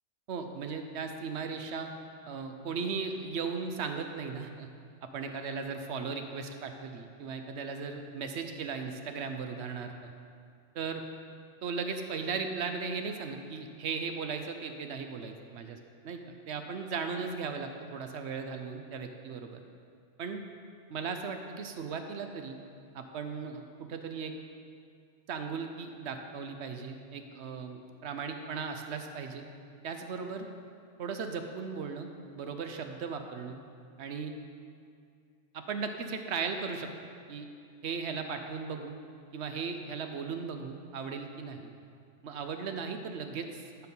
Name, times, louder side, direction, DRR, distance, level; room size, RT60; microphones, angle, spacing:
voice 1, 0.3-1.9 2.2-4.7 5.0-10.1 10.7-11.0 11.6-15.8 16.0-19.6 20.2-20.4 20.9-22.6 22.9-24.3 25.3-29.4 29.8-30.5 31.0-33.6 34.0-34.3 35.5-36.9 37.3-37.5 37.8-39.0 39.3-41.7 42.2-43.6, right 5 dB, 70° right, 6 dB, 0.9 m, -37 dB
12.0 x 4.5 x 5.5 m, 2.3 s
omnidirectional pair, 1.2 m